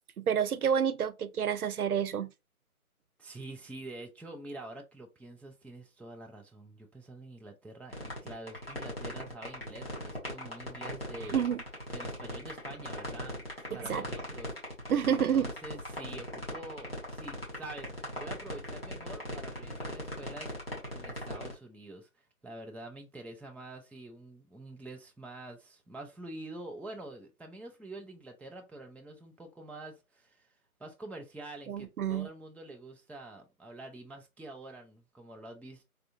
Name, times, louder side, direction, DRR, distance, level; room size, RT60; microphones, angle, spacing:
voice 1, 0.2-2.3 11.3-11.6 13.9-14.0 14.9-15.5 31.7-32.3, right 8 dB, 80° right, 0.5 m, -29 dB
voice 2, 3.2-11.4 11.9-13.4 13.7-14.5 15.0-20.5 20.9-30.5 30.8-35.8, right 2 dB, 5° left, 0.3 m, -46 dB
sound 1, 7.9-21.5, equal, 40° left, 1.4 m, -39 dB
3.4 x 2.5 x 2.4 m
figure-of-eight pair, 180°, 44 cm